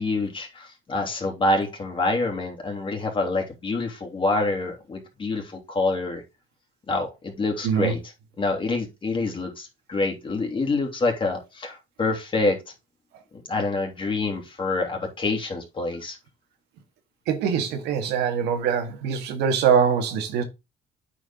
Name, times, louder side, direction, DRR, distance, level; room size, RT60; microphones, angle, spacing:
voice 1, 0.0-6.2 6.9-8.0 8.4-12.6 13.5-16.2, left 2 dB, 30° left, 3.0 m, -26 dB
voice 2, 7.6-7.9 17.3-20.4, right 7 dB, 85° right, 1.8 m, -23 dB
8.8 x 4.9 x 3.8 m
cardioid pair, 110°, 17 cm